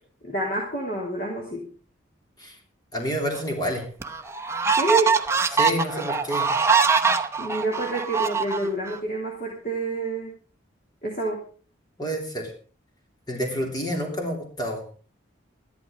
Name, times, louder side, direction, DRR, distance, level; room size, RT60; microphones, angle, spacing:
voice 1, 0.2-1.7 4.7-5.2 7.4-10.3 11.0-11.4, right 2 dB, 45° left, -1 dB, 3.2 m, -28 dB
voice 2, 2.9-3.8 5.5-6.5 12.0-12.5 13.3-14.8, equal, 20° left, 2 dB, 3.3 m, -28 dB
sound 1, 3.3-3.4 4.0-9.0, right 5 dB, 15° right, 0.8 m, -23 dB
13.5 x 11.5 x 5.2 m, 0.40 s
head